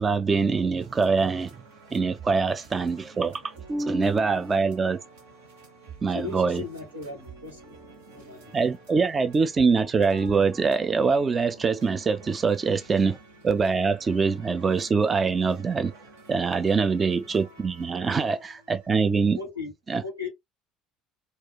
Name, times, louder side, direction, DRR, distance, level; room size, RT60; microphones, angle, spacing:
voice 1, 0.0-1.5 1.9-3.4 3.7-5.0 6.0-6.6 8.5-13.2 13.4-15.9 16.3-19.4 19.9-20.0, right 4 dB, 30° right, 0.4 m, -24 dB
sound 1, 0.8-19.4, right 4 dB, 70° right, 1.0 m, -50 dB
voice 2, 5.8-8.6 16.8-17.1 18.0-18.1 19.3-19.7 20.0-20.3, left 5 dB, 90° right, 1.3 m, -39 dB
4.1 x 2.3 x 2.2 m
figure-of-eight pair, 60°, 0 cm